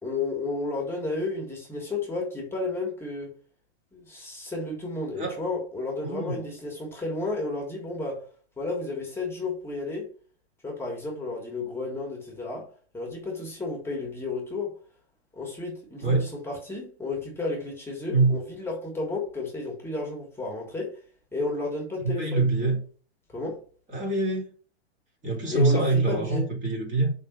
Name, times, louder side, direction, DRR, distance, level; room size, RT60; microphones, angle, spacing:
voice 1, 0.0-3.3 3.9-8.2 8.6-10.1 10.6-12.7 12.9-14.7 15.3-21.0 21.3-22.5 23.3-23.6 25.5-26.5, left 3 dB, 5° left, 1.7 m, -32 dB
voice 2, 6.0-6.4 16.0-16.2 18.1-18.4 22.0-22.8 23.9-24.5 25.2-27.1, right 3 dB, 25° right, 2.2 m, -24 dB
5.4 x 3.9 x 5.2 m
hypercardioid pair, 135°, 33 cm